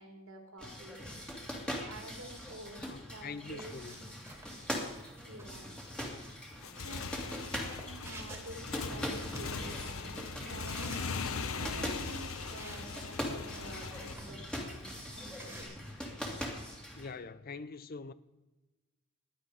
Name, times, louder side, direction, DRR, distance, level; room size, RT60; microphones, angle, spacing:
voice 1, 0.0-2.8 3.1-4.2 5.2-5.7 6.8-15.8, right 1 dB, 75° right, 3.0 m, -50 dB
sound 1, 0.6-17.1, equal, 5° left, 2.3 m, -42 dB
voice 2, 2.8-4.0 16.9-18.1, left 4 dB, 45° left, 0.6 m, -44 dB
sound 2, 3.4-15.6, right 2 dB, 10° right, 2.4 m, -55 dB
Motorcycle / Engine, 6.5-14.1, left 5 dB, 85° left, 0.9 m, -40 dB
16.0 x 11.0 x 4.9 m
head